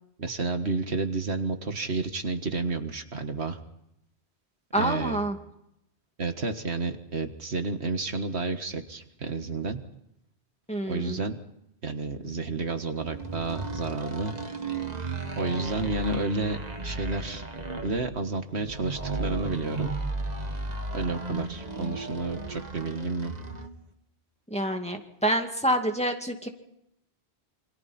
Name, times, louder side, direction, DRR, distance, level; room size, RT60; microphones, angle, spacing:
voice 1, 0.2-3.6 4.7-5.2 6.2-9.8 10.9-11.4 11.8-14.4 15.4-17.4 17.8-19.9 20.9-23.3, right 3 dB, 75° right, 7 dB, 2.0 m, -31 dB
voice 2, 4.7-5.4 10.7-11.2 24.5-26.5, right 1 dB, 5° left, 3 dB, 2.5 m, -27 dB
sound 1, 13.0-23.8, right 2 dB, 40° right, 1.9 m, -34 dB
28.0 x 26.5 x 4.4 m, 0.81 s
omnidirectional pair, 1.1 m